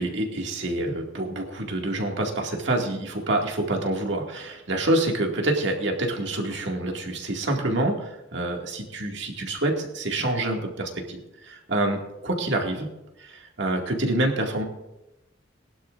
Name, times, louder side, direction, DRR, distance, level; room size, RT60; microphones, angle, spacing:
voice 1, 0.0-12.9 13.2-14.6, right 1 dB, 60° right, 1 dB, 2.1 m, -27 dB
20.5 x 11.5 x 2.5 m, 0.94 s
head